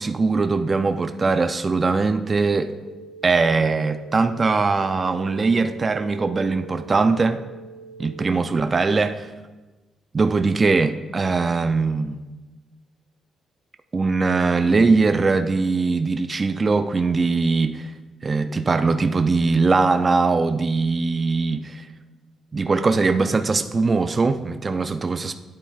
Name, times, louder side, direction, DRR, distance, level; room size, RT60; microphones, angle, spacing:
voice 1, 0.0-2.7 3.2-7.4 8.0-9.3 10.1-12.2 13.9-17.9 18.2-21.9 22.5-25.3, right 4 dB, 30° right, 8 dB, 0.4 m, -21 dB
sound 1, 2.8-8.2, right 4 dB, 15° left, 1.1 m, -43 dB
11.5 x 8.6 x 2.3 m, 1.2 s
cardioid pair, 90°, 0 cm